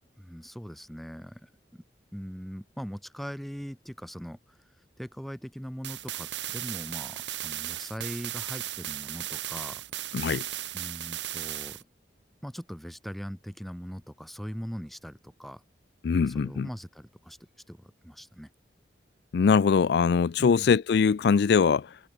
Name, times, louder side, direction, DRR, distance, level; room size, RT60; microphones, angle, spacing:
voice 1, 0.2-1.8 2.1-4.6 5.0-10.1 10.7-11.8 12.4-15.6 16.2-17.4 17.7-18.5 20.4-20.7, equal, ahead, 2.9 m, -41 dB
sound 1, 5.8-11.8, right 13 dB, 90° right, 1.2 m, -36 dB
voice 2, 10.1-10.5 16.0-16.7 19.3-22.0, left 5 dB, 65° left, 0.4 m, -22 dB
head